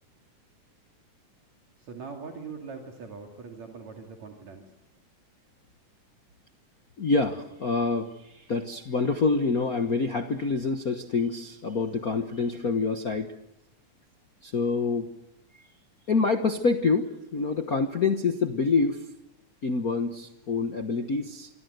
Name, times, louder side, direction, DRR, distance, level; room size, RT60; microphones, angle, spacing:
voice 1, 1.8-4.7, right 5 dB, 60° right, 2 dB, 3.6 m, -42 dB
voice 2, 7.0-13.3 14.4-15.1 16.1-19.0 19.6-21.5, left 4 dB, 60° left, 7 dB, 0.9 m, -26 dB
26.0 x 23.5 x 8.0 m, 0.86 s
omnidirectional pair, 3.6 m